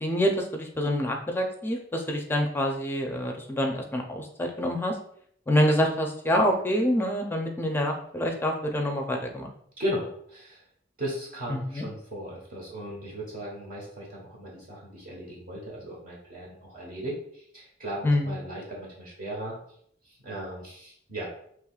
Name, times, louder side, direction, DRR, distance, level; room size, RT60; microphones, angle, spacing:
voice 1, 0.0-5.0 5.5-9.5 11.5-11.8 18.0-18.3, equal, 10° left, 2 dB, 0.5 m, -26 dB
voice 2, 9.8-10.6 11.0-19.6 20.0-21.3, equal, 50° right, -4 dB, 1.2 m, -36 dB
6.5 x 3.0 x 2.4 m, 0.66 s
head